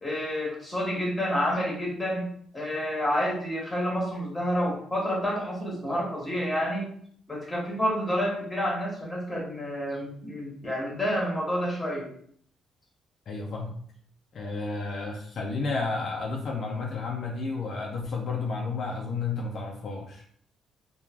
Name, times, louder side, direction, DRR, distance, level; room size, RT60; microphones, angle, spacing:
voice 1, 0.0-2.3 2.5-6.9 7.3-12.1, equal, 15° left, -3 dB, 1.1 m, -29 dB
voice 2, 13.3-13.7 14.3-20.2, left 3 dB, 60° left, 0 dB, 0.4 m, -32 dB
3.1 x 2.2 x 2.3 m, 0.62 s
cardioid pair, 90°, 0 cm